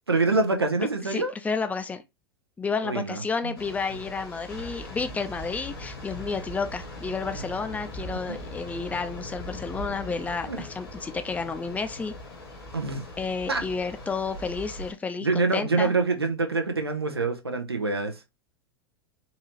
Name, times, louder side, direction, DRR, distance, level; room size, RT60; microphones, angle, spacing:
voice 1, 0.1-1.3 2.8-3.6 8.1-8.4 10.5-10.6 12.7-13.0 13.5-13.6 15.2-18.2, right 3 dB, 85° right, 0.7 m, -26 dB
voice 2, 1.1-2.0 2.6-12.1 13.2-15.9, left 4 dB, 10° left, 0.5 m, -31 dB
sound 1, 3.5-14.9, left 1 dB, 70° left, 1.4 m, -40 dB
4.0 x 2.6 x 2.9 m
figure-of-eight pair, 85°, 13 cm